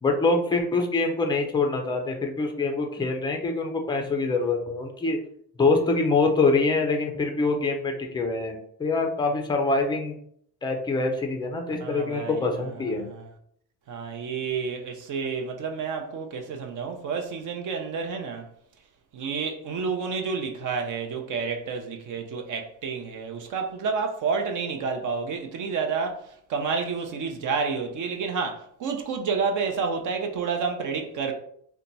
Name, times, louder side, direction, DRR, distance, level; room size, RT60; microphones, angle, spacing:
voice 1, 0.0-5.2 5.6-10.2 10.6-13.1, left 3 dB, 10° left, 0.4 m, -25 dB
voice 2, 11.8-13.3 13.9-18.5 19.1-26.2 26.5-31.3, right 5 dB, 50° right, 0.6 m, -30 dB
2.8 x 2.2 x 3.9 m
cardioid pair, 140°, 41 cm